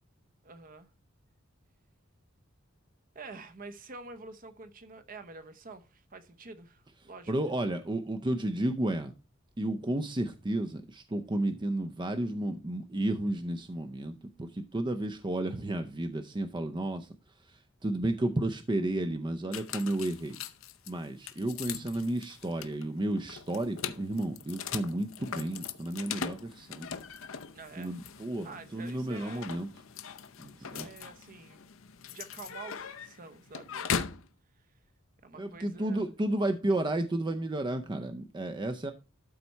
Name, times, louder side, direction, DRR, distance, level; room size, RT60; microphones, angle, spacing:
voice 1, 0.4-0.9 3.1-7.3 27.5-27.9 28.4-29.5 30.6-31.7 32.1-34.1 34.6-34.7 35.2-36.0, right 3 dB, 45° right, 0.9 m, -48 dB
voice 2, 7.3-9.1 9.6-17.1 17.4-20.4 20.9-26.9 27.8-29.7 30.4-30.9 35.4-38.9, right 1 dB, 25° right, 0.6 m, -32 dB
sound 1, 19.5-34.3, left 7 dB, 75° left, 0.7 m, -40 dB
12.5 x 4.2 x 4.5 m
head